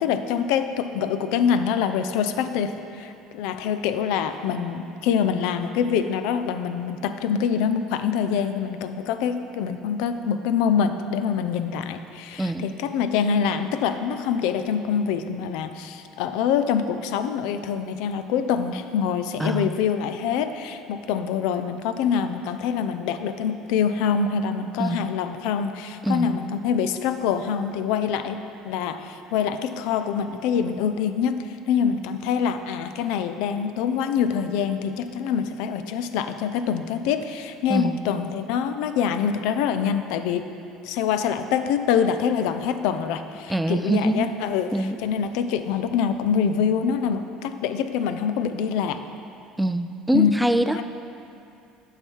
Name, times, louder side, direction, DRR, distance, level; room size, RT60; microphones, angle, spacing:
voice 1, 0.0-31.4 31.7-40.5 40.8-49.0 50.1-50.3 50.7-50.8, left 7 dB, 75° left, 9 dB, 0.4 m, -25 dB
voice 2, 19.4-19.7 24.8-25.1 26.0-26.4 37.7-38.1 43.5-44.3 44.7-45.0 49.6-50.8, right 1 dB, 5° right, 9 dB, 0.4 m, -24 dB
8.8 x 5.7 x 4.5 m, 2.6 s
supercardioid pair, 85°, 0 cm